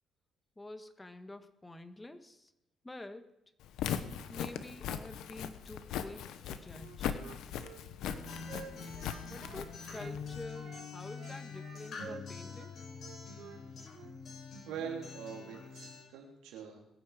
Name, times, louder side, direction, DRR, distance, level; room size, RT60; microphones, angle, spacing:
voice 1, 0.6-2.5 2.8-3.3 4.3-7.2 9.2-12.8, left 2 dB, 15° left, 9 dB, 1.6 m, -48 dB
Walk footsteps, 3.6-10.4, left 9 dB, 80° left, 1.1 m, -40 dB
Wind instrument woodwind instrument, 6.8-10.2 10.5-13.6 13.9-14.1, right 6 dB, 70° right, 1.7 m, -51 dB
Acoustic guitar, 8.0-16.0, left 5 dB, 60° left, 7.5 m, -46 dB
voice 2, 14.7-16.8, right 7 dB, 90° right, 1 dB, 3.5 m, -43 dB
21.5 x 9.6 x 5.1 m, 0.86 s
supercardioid pair, 75°, 0 cm